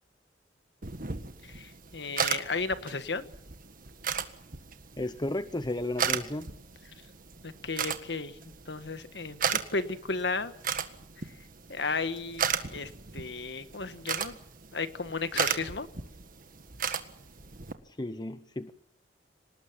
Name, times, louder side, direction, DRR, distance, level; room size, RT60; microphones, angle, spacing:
sound 1, 0.8-17.7, right 7 dB, 50° right, 1.7 m, -36 dB
voice 1, 1.5-3.3 7.4-8.3 8.7-10.5 11.7-14.4 14.7-15.9, left 4 dB, 70° left, 11 dB, 1.5 m, -34 dB
voice 2, 5.0-6.5 17.8-18.7, left 1 dB, 25° left, 11 dB, 0.9 m, -33 dB
25.5 x 19.5 x 7.5 m, 0.69 s
head